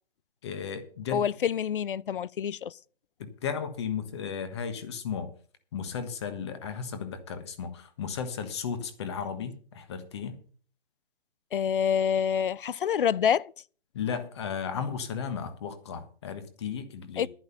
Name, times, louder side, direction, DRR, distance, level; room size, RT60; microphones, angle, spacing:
voice 1, 0.4-1.3 3.2-5.3 5.7-10.4 13.9-17.3, left 6 dB, 25° left, 1.4 m, -35 dB
voice 2, 1.1-2.8 11.5-13.5 17.2-17.3, left 8 dB, 60° left, 0.5 m, -27 dB
11.0 x 10.5 x 5.7 m
hypercardioid pair, 165°, 31 cm